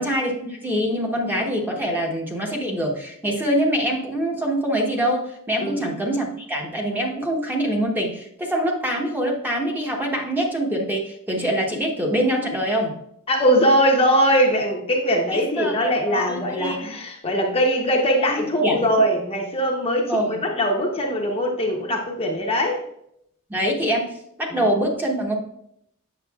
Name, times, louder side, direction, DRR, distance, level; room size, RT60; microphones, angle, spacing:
voice 1, 0.0-13.0 15.3-16.9 18.3-19.0 20.0-20.4 23.5-24.1 24.4-25.3, equal, 10° right, 0 dB, 0.9 m, -24 dB
voice 2, 13.3-22.8 24.5-24.6, equal, 25° left, 0 dB, 0.8 m, -21 dB
7.8 x 6.5 x 2.3 m, 0.74 s
head